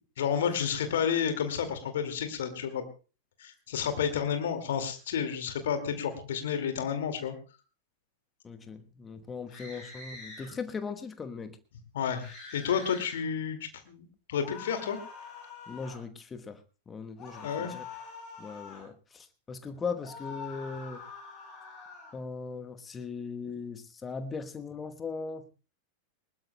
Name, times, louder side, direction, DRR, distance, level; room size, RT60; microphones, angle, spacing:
voice 1, 0.2-2.8 3.4-7.3 11.9-15.0 17.4-17.7, left 7 dB, 60° left, 8 dB, 2.2 m, -31 dB
voice 2, 8.4-11.6 15.7-16.6 16.9-17.8 18.4-21.0 22.1-25.5, left 5 dB, 20° left, 9 dB, 1.1 m, -39 dB
sound 1, 9.5-10.5 12.2-13.2 14.4-16.0 17.2-18.9 20.0-22.1, left 5 dB, 35° left, 7.1 m, -45 dB
21.0 x 20.0 x 2.3 m, 0.34 s
figure-of-eight pair, 90°, 0 cm